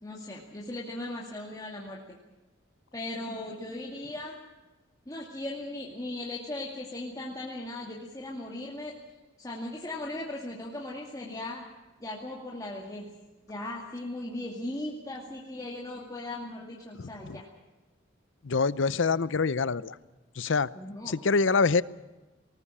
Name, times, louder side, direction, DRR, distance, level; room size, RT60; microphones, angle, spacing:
voice 1, 0.0-2.2 2.9-4.4 5.1-9.0 9.4-11.6 12.0-13.1 13.5-17.5 20.8-21.2, left 1 dB, 20° left, -3 dB, 2.3 m, -38 dB
voice 2, 17.0-17.4 18.4-20.0 20.4-20.7 21.1-21.8, left 4 dB, 70° left, 18 dB, 0.6 m, -25 dB
20.0 x 19.0 x 8.5 m, 1.1 s
head